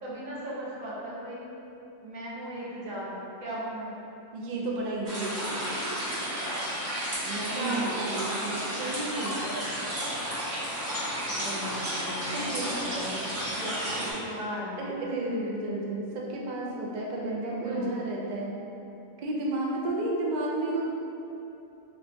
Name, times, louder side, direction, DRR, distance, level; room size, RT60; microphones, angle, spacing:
voice 1, 0.0-1.5 2.0-3.9 7.5-8.0 11.3-13.2 14.1-14.8 17.6-18.0, equal, 90° right, -8 dB, 1.4 m, -37 dB
voice 2, 4.3-5.4 7.3-9.4 12.1-12.9 13.6-13.9 14.8-18.6 19.2-20.8, right 2 dB, 60° right, -4 dB, 0.4 m, -32 dB
sound 1, 5.1-14.1, equal, 35° right, 1.1 m, -32 dB
3.1 x 2.2 x 4.1 m, 3.0 s
omnidirectional pair, 1.4 m